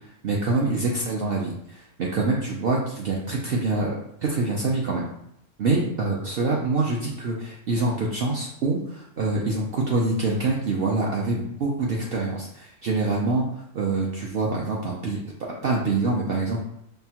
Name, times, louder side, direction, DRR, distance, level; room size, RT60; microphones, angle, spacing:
voice 1, 0.2-3.9 4.2-5.1 5.6-13.4 13.7-16.6, right 3 dB, 75° right, -3 dB, 0.5 m, -25 dB
5.4 x 2.1 x 2.8 m, 0.74 s
omnidirectional pair, 1.6 m